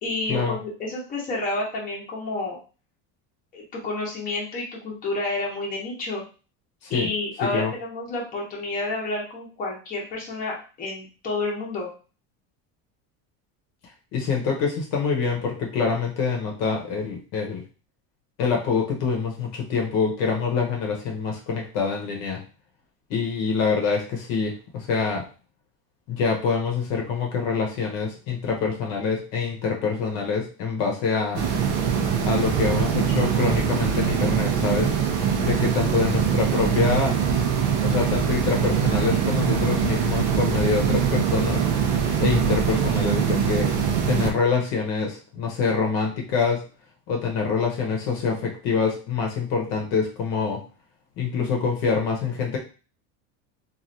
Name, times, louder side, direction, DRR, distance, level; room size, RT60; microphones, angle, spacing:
voice 1, 0.0-2.6 3.5-6.2 6.9-11.9, left 2 dB, 20° left, -4 dB, 0.8 m, -30 dB
voice 2, 7.4-7.7 14.1-17.6 18.4-22.4 23.1-25.3 26.1-31.5 32.2-34.9 35.4-37.2 37.8-41.7 42.2-43.7 44.1-46.6 47.1-50.6 51.2-52.6, left 5 dB, 50° left, 1 dB, 0.8 m, -25 dB
sound 1, 31.3-44.3, right 7 dB, 55° right, 0.6 m, -23 dB
3.1 x 2.5 x 2.6 m, 0.35 s
cardioid pair, 170°, 39 cm